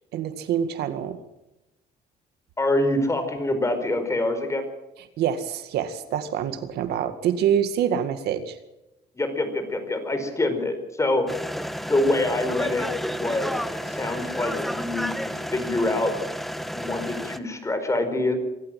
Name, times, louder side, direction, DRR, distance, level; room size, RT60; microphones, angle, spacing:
voice 1, 0.1-1.2 5.2-8.6, right 9 dB, 75° right, 10 dB, 2.0 m, -26 dB
voice 2, 2.6-4.6 9.1-11.2 11.9-16.1 16.7-18.4, left 2 dB, 15° left, 7 dB, 4.9 m, -25 dB
sound 1, 11.3-17.4, equal, ahead, 1.2 m, -31 dB
24.0 x 14.0 x 7.7 m, 0.96 s
cardioid pair, 110°, 17 cm